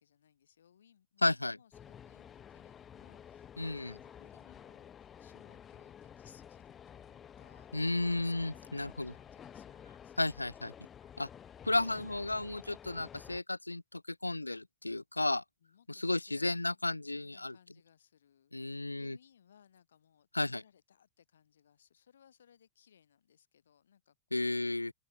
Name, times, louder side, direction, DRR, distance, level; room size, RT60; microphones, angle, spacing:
voice 1, 0.0-10.5 15.6-24.5, left 8 dB, 65° left, 7.9 m, -65 dB
voice 2, 1.2-1.6 3.6-3.9 7.7-9.1 10.2-10.7 11.2-11.3 11.6-15.4 15.9-17.5 18.5-19.2 20.3-20.6 24.3-24.9, left 2 dB, 85° left, 0.5 m, -33 dB
sound 1, 1.7-13.4, left 8 dB, 25° left, 1.9 m, -52 dB
figure-of-eight pair, 90°, 0 cm